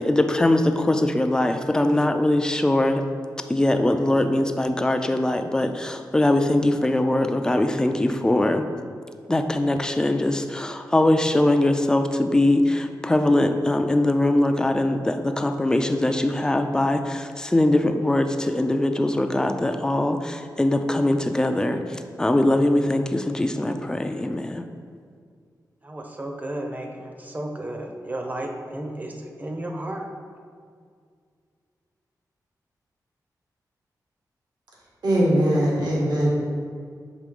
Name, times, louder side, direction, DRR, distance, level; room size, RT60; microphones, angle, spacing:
voice 1, 0.0-3.0 3.5-8.7 9.3-24.7, left 1 dB, 10° left, 6 dB, 0.4 m, -22 dB
voice 2, 25.8-30.1, right 1 dB, 25° right, 3 dB, 0.7 m, -33 dB
voice 3, 35.0-36.3, right 1 dB, 85° right, -5 dB, 1.5 m, -20 dB
6.1 x 3.3 x 5.2 m, 2.1 s
wide cardioid pair, 105°, 7 cm